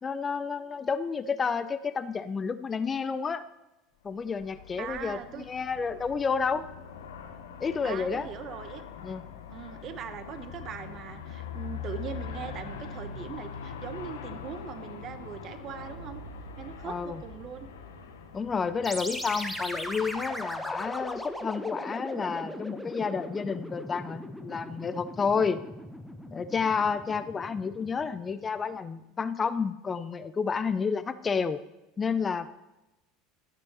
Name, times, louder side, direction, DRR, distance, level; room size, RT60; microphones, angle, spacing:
voice 1, 0.0-3.4 4.0-6.7 7.6-8.3 9.0-9.2 16.8-17.2 18.3-25.6 26.3-31.6 32.0-32.5, left 5 dB, 25° left, 14 dB, 0.5 m, -30 dB
Aircraft, 4.1-21.4, left 6 dB, 75° left, 0.9 m, -43 dB
voice 2, 4.8-5.5 7.8-8.8 9.5-16.2 16.6-17.7, right 8 dB, 45° right, 10 dB, 0.9 m, -41 dB
sound 1, 18.8-28.4, left 1 dB, ahead, 0.9 m, -39 dB
12.0 x 9.2 x 3.0 m, 0.98 s
hypercardioid pair, 75°, 0 cm